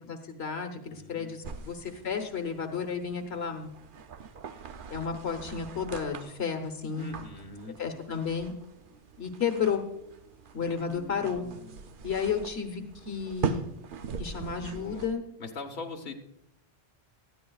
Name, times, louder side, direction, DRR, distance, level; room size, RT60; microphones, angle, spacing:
voice 1, 0.0-3.7 4.9-7.1 7.8-8.5 9.2-9.8 10.5-11.5 12.0-13.6 14.2-15.2, left 6 dB, 90° left, 6 dB, 1.4 m, -32 dB
voice 2, 0.9-1.6 7.0-7.8 10.6-11.8 14.6-15.1 15.4-16.1, left 3 dB, 70° left, 3 dB, 1.4 m, -43 dB
sound 1, 1.4-15.1, right 5 dB, 60° right, 0.8 m, -41 dB
19.0 x 13.5 x 2.4 m, 0.84 s
omnidirectional pair, 1.0 m